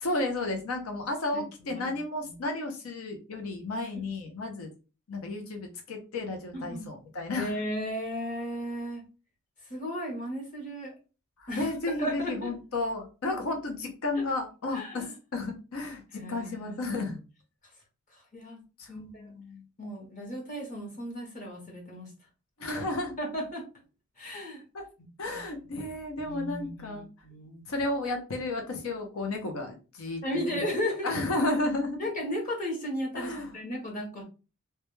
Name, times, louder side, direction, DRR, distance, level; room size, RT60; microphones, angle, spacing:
voice 1, 0.0-4.7 5.1-7.5 11.4-15.1 15.3-17.2 18.8-19.6 22.6-23.1 24.7-24.8 25.2-27.0 27.7-30.5 31.0-32.1 33.1-33.5, left 2 dB, 75° left, 3 dB, 0.6 m, -32 dB
voice 2, 1.3-2.0 2.2-2.4 3.9-4.1 6.5-6.9 7.3-9.0 9.7-10.9 11.5-11.7 12.0-12.6 14.7-15.1 16.1-17.0 18.3-18.6 18.9-19.3 19.8-22.1 23.2-23.6 24.2-24.6 25.3-25.4 26.3-27.7 30.2-31.1 32.0-34.2, equal, 35° left, 0 dB, 0.8 m, -35 dB
2.2 x 2.1 x 3.0 m, 0.33 s
head